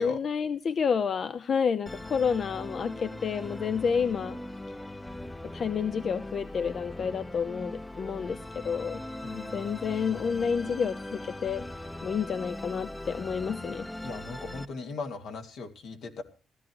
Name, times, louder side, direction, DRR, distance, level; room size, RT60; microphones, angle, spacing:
voice 1, 0.0-4.4 5.5-9.0 9.3-13.9, left 6 dB, 50° left, 13 dB, 0.7 m, -29 dB
Musical instrument, 1.9-14.7, left 1 dB, 10° left, 0.8 m, -40 dB
voice 2, 9.2-9.7 14.0-16.2, left 4 dB, 75° left, 4 dB, 2.5 m, -39 dB
16.0 x 12.5 x 4.7 m, 0.33 s
cardioid pair, 90°, 0 cm